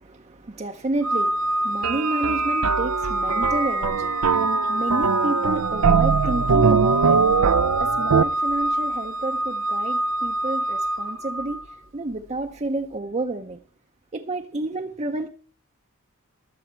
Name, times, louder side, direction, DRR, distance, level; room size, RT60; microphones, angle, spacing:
voice 1, 0.1-13.6 14.1-15.3, right 2 dB, 30° right, 0.6 m, -30 dB
Organ, 1.0-11.8, right 1 dB, 60° right, 0.9 m, -26 dB
sound 1, 1.8-8.2, right 6 dB, 90° right, 0.5 m, -22 dB
20.0 x 7.1 x 4.4 m
head